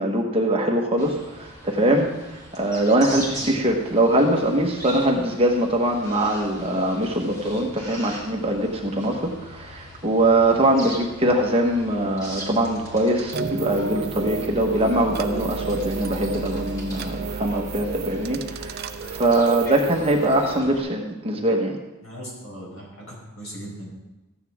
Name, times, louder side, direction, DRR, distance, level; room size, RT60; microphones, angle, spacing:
voice 1, 0.0-2.1 2.5-21.8, right 1 dB, 25° right, 0 dB, 1.2 m, -22 dB
sound 1, 1.0-20.8, equal, 15° left, 2.1 m, -41 dB
sound 2, 13.3-20.6, right 5 dB, 45° right, 0.5 m, -32 dB
voice 2, 22.0-23.9, equal, 70° left, -3 dB, 4.7 m, -39 dB
14.0 x 9.3 x 3.6 m, 1.0 s
head